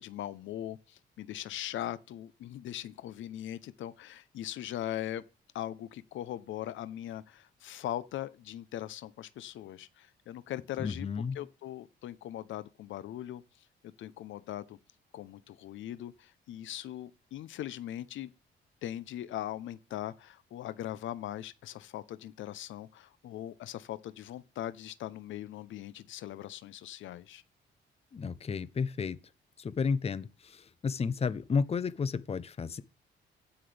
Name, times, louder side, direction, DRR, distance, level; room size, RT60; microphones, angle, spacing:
voice 1, 0.0-5.2 5.5-14.8 15.1-18.3 18.8-27.4, left 12 dB, 75° left, 0.7 m, -40 dB
voice 2, 10.8-11.4 28.1-29.2 29.6-32.8, left 5 dB, 30° left, 0.7 m, -32 dB
16.0 x 5.8 x 3.4 m
cardioid pair, 90°, 20 cm